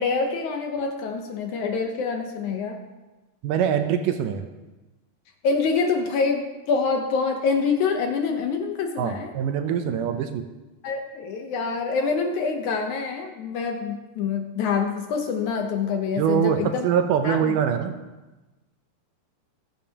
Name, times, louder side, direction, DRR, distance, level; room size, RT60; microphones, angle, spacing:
voice 1, 0.0-2.8 5.4-9.3 10.8-16.9 17.2-17.5, left 5 dB, 75° left, 3 dB, 1.8 m, -26 dB
voice 2, 3.4-4.4 9.0-10.5 16.2-17.9, right 8 dB, 75° right, 7 dB, 2.0 m, -23 dB
20.5 x 9.1 x 2.9 m, 1.1 s
omnidirectional pair, 4.5 m